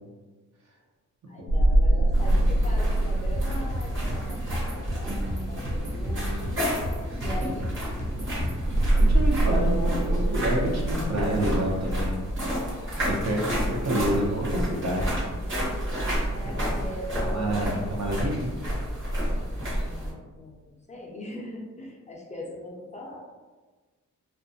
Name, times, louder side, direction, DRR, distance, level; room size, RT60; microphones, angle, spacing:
voice 1, 1.3-6.7 7.2-7.7 13.6-13.8 16.3-17.6 19.8-23.2, left 1 dB, 25° left, -2 dB, 0.4 m, -40 dB
sound 1, 1.5-5.9 8.6-12.7, right 1 dB, 80° left, 0.5 m, -25 dB
sound 2, 2.1-20.1, equal, 40° right, 1.0 m, -31 dB
sound 3, 3.3-9.5, equal, 25° right, 0.6 m, -35 dB
voice 2, 9.1-12.2 13.0-15.2 16.4-16.5 17.3-18.5, equal, 60° right, -2 dB, 0.7 m, -28 dB
2.4 x 2.1 x 2.6 m, 1.3 s
wide cardioid pair, 130°, 30 cm